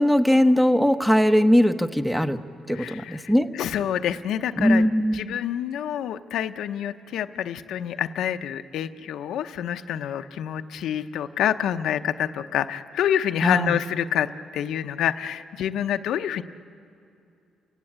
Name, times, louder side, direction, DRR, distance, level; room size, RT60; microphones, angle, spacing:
voice 1, 0.0-2.4 2.7-3.5 4.6-5.4 13.4-13.8, equal, 5° right, 8 dB, 1.1 m, -20 dB
voice 2, 2.7-4.8 5.1-16.4, left 10 dB, 80° left, 9 dB, 0.8 m, -27 dB
29.5 x 16.5 x 8.8 m, 2.5 s
cardioid pair, 90°, 0 cm